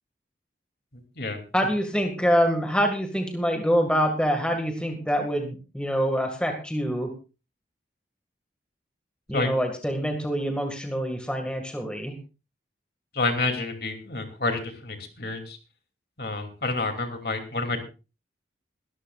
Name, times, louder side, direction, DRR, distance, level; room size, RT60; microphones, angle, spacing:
voice 1, 1.5-7.1 9.3-12.1, equal, 5° left, 3 dB, 1.8 m, -25 dB
voice 2, 13.1-15.6 16.2-17.8, left 3 dB, 60° left, 5 dB, 2.8 m, -29 dB
22.0 x 13.5 x 2.4 m, 0.32 s
head